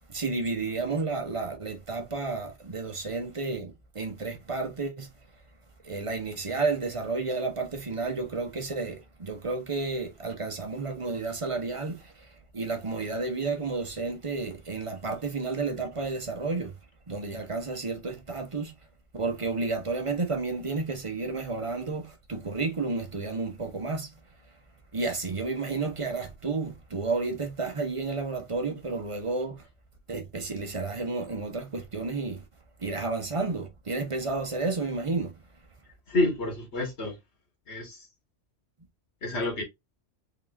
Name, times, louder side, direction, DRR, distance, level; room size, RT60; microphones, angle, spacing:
voice 1, 0.1-5.1 5.8-12.0 12.5-16.7 17.1-18.7 19.1-24.1 24.9-29.6 30.1-32.4 32.8-35.3, right 3 dB, 30° right, 0.7 m, -31 dB
voice 2, 36.1-37.1 37.7-38.0 39.2-39.6, left 2 dB, 70° left, 1.8 m, -28 dB
3.8 x 3.5 x 2.5 m
omnidirectional pair, 1.2 m